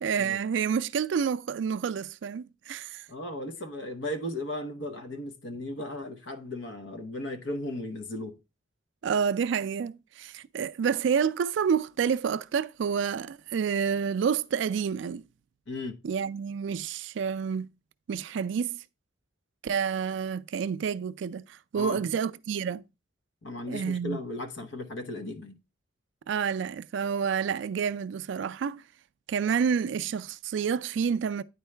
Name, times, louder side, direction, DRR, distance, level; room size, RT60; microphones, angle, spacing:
voice 1, 0.0-3.1 9.0-15.2 16.0-17.7 18.1-18.8 19.6-22.8 23.7-24.2 26.3-28.8 29.3-31.4, right 7 dB, 70° right, 0.3 m, -29 dB
voice 2, 3.1-8.4 15.7-16.0 21.7-22.0 23.4-25.6, left 1 dB, 75° left, 0.9 m, -36 dB
9.5 x 4.5 x 3.2 m
head